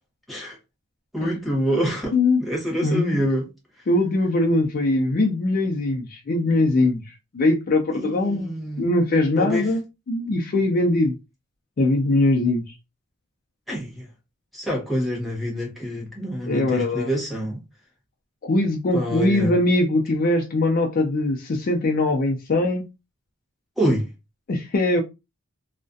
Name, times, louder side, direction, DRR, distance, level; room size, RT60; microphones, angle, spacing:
voice 1, 1.1-2.1 2.4-3.5 7.9-8.9 9.4-9.7 13.7-14.1 14.5-17.6 18.9-19.5 23.8-24.1, equal, ahead, 0.9 m, -26 dB
voice 2, 2.8-3.2 3.9-7.0 7.3-9.8 10.1-11.1 11.8-12.7 16.4-17.1 18.4-22.8 24.5-25.0, left 2 dB, 40° left, 0.4 m, -21 dB
2.3 x 2.1 x 2.6 m
head